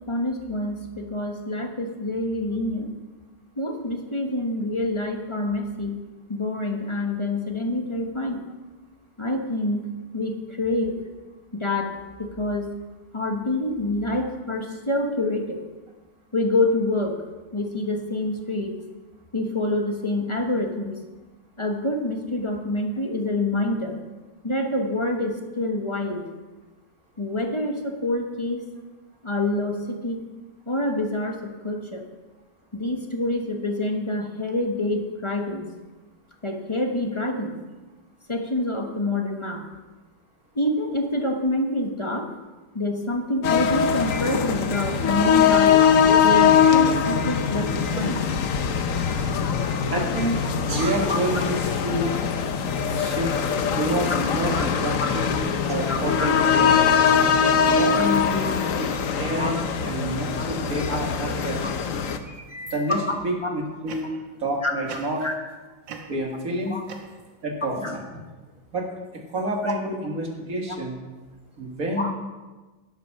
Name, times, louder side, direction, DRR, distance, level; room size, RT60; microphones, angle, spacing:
voice 1, 0.1-2.9 3.6-6.0 6.3-8.4 9.2-9.9 10.1-11.0 11.5-12.7 13.1-15.6 16.3-17.2 17.5-18.7 19.3-21.0 21.6-24.0 24.4-26.2 27.2-28.7 29.2-30.2 30.7-32.0 32.7-35.7 36.4-37.6 38.3-39.6 40.5-42.3 42.7-45.8 46.2-48.2 51.1-51.2 54.1-54.2 54.5-54.7 55.0-55.1 55.9-56.3 57.9-58.0 59.4-59.5 60.4-60.5 60.9-61.0 62.9-63.0 63.4-63.5 64.6-64.7 65.2-65.3 66.7-66.8 67.8-67.9 69.6-69.7 72.0-72.1, left 1 dB, 20° left, 3 dB, 0.9 m, -26 dB
sound 1, 43.4-62.2, left 7 dB, 55° left, 1.0 m, -22 dB
voice 2, 49.9-51.4 51.8-52.1 52.9-53.3 53.7-55.4 55.6-56.7 57.6-58.9 59.2-61.7 62.3-64.1 64.4-65.3 66.1-66.8 67.4-68.0 68.7-68.9 69.3-71.0 71.6-72.1, right 1 dB, 50° right, 1 dB, 2.3 m, -28 dB
sound 2, 62.0-63.4 63.9-64.3 64.9-65.5 65.8-67.5, right 6 dB, 80° right, 1.8 m, -42 dB
11.0 x 8.2 x 6.1 m, 1.2 s
omnidirectional pair, 2.0 m